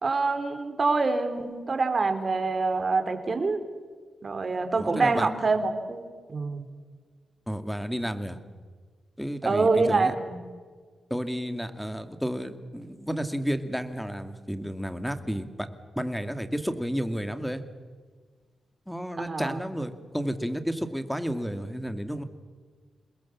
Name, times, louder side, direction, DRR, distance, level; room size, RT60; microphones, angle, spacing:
voice 1, 0.0-3.6 4.2-6.7 9.5-10.4 19.2-19.6, right 3 dB, 45° right, 7 dB, 3.7 m, -26 dB
voice 2, 4.8-5.3 7.5-8.4 9.2-10.1 11.1-15.7 16.0-17.6 18.9-22.2, equal, ahead, 8 dB, 2.4 m, -31 dB
29.0 x 21.0 x 7.4 m, 1.5 s
cardioid pair, 75°, 0 cm